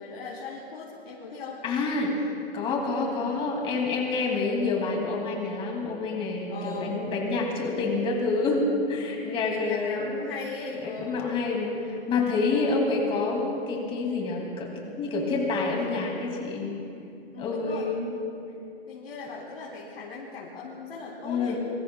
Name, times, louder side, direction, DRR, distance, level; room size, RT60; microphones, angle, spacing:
voice 1, 0.0-1.6 3.0-3.3 6.5-7.0 9.3-11.2 12.5-12.8 17.3-17.9 18.9-21.6, left 4 dB, 70° left, -4 dB, 3.0 m, -38 dB
voice 2, 1.6-2.3 2.5-10.3 10.8-14.7 15.0-16.8 17.4-18.1 21.2-21.6, left 3 dB, 15° left, 0 dB, 2.2 m, -28 dB
25.0 x 22.5 x 2.2 m, 2.6 s
hypercardioid pair, 155°, 33 cm